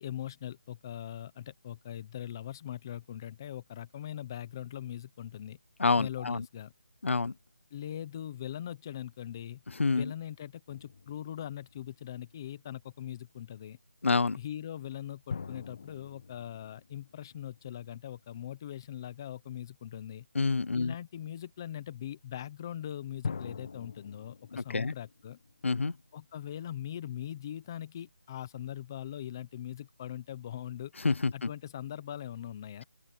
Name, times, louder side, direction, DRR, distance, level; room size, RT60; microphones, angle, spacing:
voice 1, 0.0-5.6 6.0-6.7 7.7-9.6 9.9-13.8 14.4-20.2 20.7-25.4 26.1-30.9 31.3-32.8, left 11 dB, 15° left, 0.9 m, -41 dB
voice 2, 5.8-6.4 7.0-7.3 9.8-10.1 14.0-14.4 20.3-20.9 24.6-24.9 25.6-25.9 31.0-31.5, left 4 dB, 70° left, 0.8 m, -27 dB
sound 1, 10.7-12.3 15.3-18.0 23.2-26.2, left 5 dB, 35° left, 1.9 m, -44 dB
open air
figure-of-eight pair, 175°, 7 cm